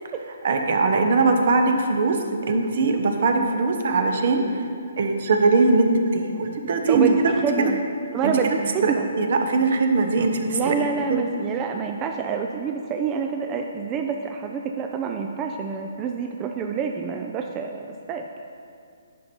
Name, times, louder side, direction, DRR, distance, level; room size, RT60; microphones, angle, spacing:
voice 1, 0.4-2.2 2.5-4.7 5.0-5.9 6.1-7.3 7.6-7.7 8.2-8.6 8.8-10.7 11.1-11.2, right 3 dB, 60° right, 5 dB, 0.9 m, -21 dB
voice 2, 6.9-7.8 8.1-9.1 10.5-18.3, right 6 dB, 20° right, 3 dB, 0.4 m, -27 dB
9.4 x 5.4 x 4.4 m, 2.3 s
hypercardioid pair, 145°, 0 cm